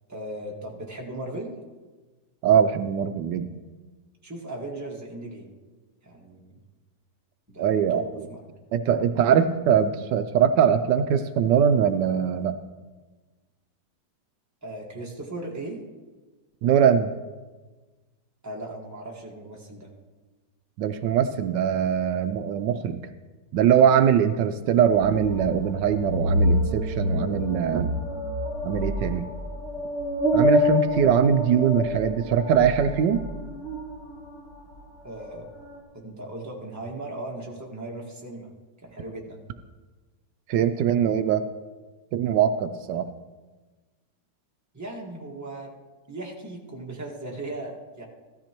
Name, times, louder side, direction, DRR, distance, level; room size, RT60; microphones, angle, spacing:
voice 1, 0.1-1.5 4.2-5.5 6.0-6.6 7.5-8.0 8.3-8.4 14.6-15.8 18.4-19.9 35.0-35.5 35.9-38.5 38.8-39.4 44.7-45.7 46.1-48.1, right 2 dB, 10° right, -2 dB, 1.4 m, -37 dB
voice 2, 2.4-3.5 7.6-8.0 8.7-12.6 16.6-17.1 20.8-23.0 23.5-27.9 28.6-29.3 30.3-33.2 40.5-41.5 42.1-43.1, right 8 dB, 80° right, 10 dB, 1.2 m, -22 dB
sound 1, 24.9-34.8 35.1-35.8, left 1 dB, 45° left, 2.5 m, -27 dB
15.0 x 13.0 x 3.0 m, 1.3 s
omnidirectional pair, 1.9 m